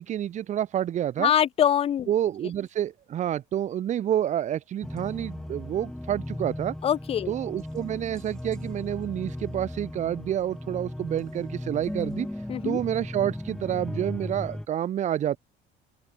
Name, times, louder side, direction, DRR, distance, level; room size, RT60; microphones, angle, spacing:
voice 1, 0.0-1.3 2.1-6.7 7.3-12.3 12.6-15.4, right 11 dB, 40° right, 2.9 m, -28 dB
voice 2, 1.2-2.1 6.8-7.3 12.5-12.8, left 9 dB, 30° left, 0.9 m, -23 dB
sound 1, 4.8-14.7, left 1 dB, 5° left, 1.8 m, -37 dB
open air
cardioid pair, 175°, 19 cm